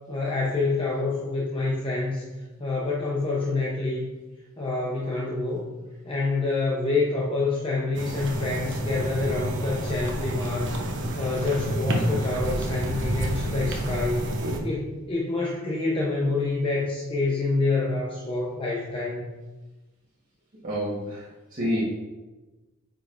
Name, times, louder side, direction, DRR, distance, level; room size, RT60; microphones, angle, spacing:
voice 1, 0.1-2.2 2.6-4.1 4.6-5.7 6.1-10.8 11.2-14.4 14.6-19.3, left 3 dB, 25° left, -4 dB, 0.8 m, -27 dB
sound 1, 7.9-14.6, right 1 dB, 60° right, 0.9 m, -29 dB
voice 2, 20.6-21.8, equal, 40° right, -8 dB, 1.4 m, -29 dB
8.7 x 5.4 x 2.6 m, 1.1 s
head